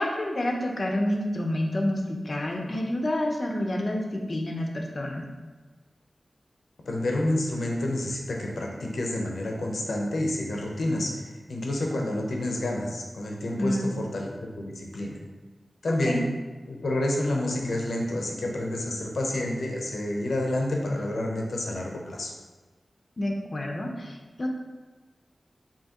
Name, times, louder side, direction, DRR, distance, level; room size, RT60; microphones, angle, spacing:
voice 1, 0.0-5.2 13.6-13.9 16.0-16.2 23.2-24.5, left 1 dB, 45° left, 1 dB, 0.6 m, -28 dB
voice 2, 6.9-15.1 15.8-16.2 16.7-22.3, left 1 dB, 80° left, 0 dB, 0.7 m, -29 dB
4.7 x 2.8 x 2.9 m, 1.3 s
wide cardioid pair, 75°, 0 cm